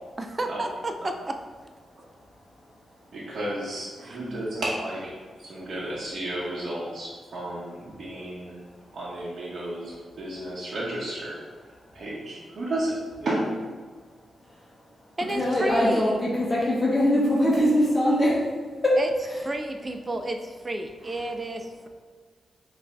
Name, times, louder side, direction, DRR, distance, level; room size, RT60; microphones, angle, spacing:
voice 1, 0.2-1.2 4.0-4.5 15.2-16.2 19.0-19.1 19.4-21.9, right 1 dB, 30° right, 5 dB, 0.4 m, -32 dB
voice 2, 3.1-5.1 5.4-8.6 8.9-13.6, right 1 dB, 60° right, -7 dB, 0.9 m, -32 dB
voice 3, 14.5-14.8 15.3-19.0, left 1 dB, 25° left, -5 dB, 0.9 m, -22 dB
5.3 x 2.6 x 3.3 m, 1.5 s
cardioid pair, 85°, 0 cm